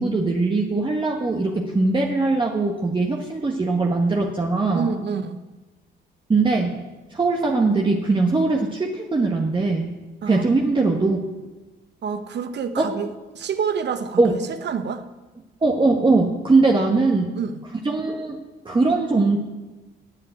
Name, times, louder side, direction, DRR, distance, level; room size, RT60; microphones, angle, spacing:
voice 1, 0.0-4.9 6.3-6.7 7.1-9.9 10.3-11.2 12.8-12.9 14.2-14.4 15.6-17.3 17.8-18.4 18.6-19.4, right 3 dB, 25° right, 0 dB, 1.4 m, -21 dB
voice 2, 4.7-5.4 10.2-10.7 12.0-13.1 13.3-15.0 16.9-17.6, right 6 dB, 60° right, 9 dB, 1.1 m, -28 dB
11.0 x 7.8 x 9.1 m, 1.2 s
cardioid pair, 90°, 20 cm